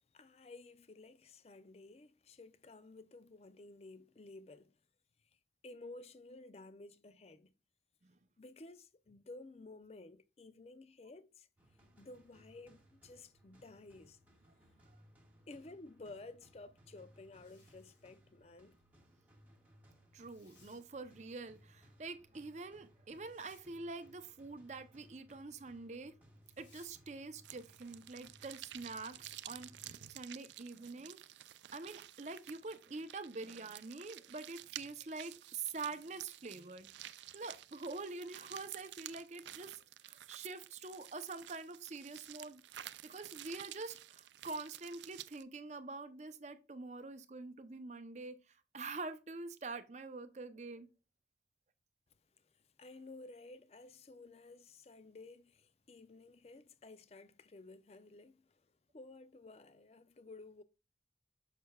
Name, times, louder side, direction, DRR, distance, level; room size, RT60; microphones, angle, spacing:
voice 1, 0.0-4.8 5.6-7.5 8.4-11.5 12.0-14.2 15.5-18.8 52.8-58.6 58.9-60.6, left 2 dB, 35° left, 0.4 m, -54 dB
sound 1, 11.6-30.6, equal, 10° right, 1.5 m, -65 dB
Zipper (clothing), 17.1-18.2 20.2-20.8 23.2-23.7 26.4-26.9, left 3 dB, 90° left, 3.2 m, -67 dB
voice 2, 20.1-26.1 26.6-31.2 31.7-42.6 43.0-50.9, right 3 dB, 40° right, 0.6 m, -46 dB
sound 2, 27.4-45.4, right 13 dB, 80° right, 0.4 m, -52 dB
6.7 x 6.5 x 2.3 m
head